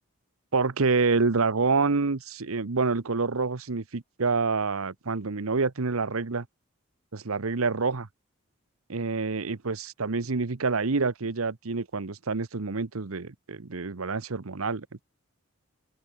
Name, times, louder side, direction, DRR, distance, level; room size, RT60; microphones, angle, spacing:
voice 1, 0.5-6.5 7.1-8.1 8.9-15.0, right 4 dB, 80° right, 1.0 m, -27 dB
open air
head